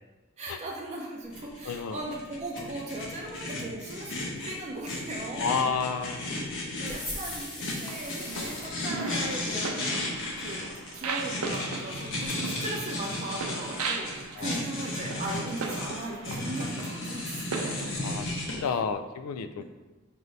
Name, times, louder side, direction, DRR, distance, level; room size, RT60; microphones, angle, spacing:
voice 1, 0.4-5.7 6.8-10.1 10.4-17.7 18.6-18.8 19.6-19.7, right 2 dB, 30° right, -2 dB, 0.5 m, -38 dB
sound 1, 1.3-18.6, left 2 dB, 60° left, 0.8 m, -35 dB
voice 2, 1.6-2.1 5.4-6.2 8.4-8.6 14.4-14.7 18.0-19.6, left 6 dB, 85° left, 9 dB, 0.3 m, -31 dB
sound 2, 6.8-8.7, left 1 dB, 20° left, 0.9 m, -39 dB
sound 3, 7.9-18.7, right 4 dB, 90° right, 0.5 m, -38 dB
5.4 x 2.6 x 3.1 m, 1.2 s
head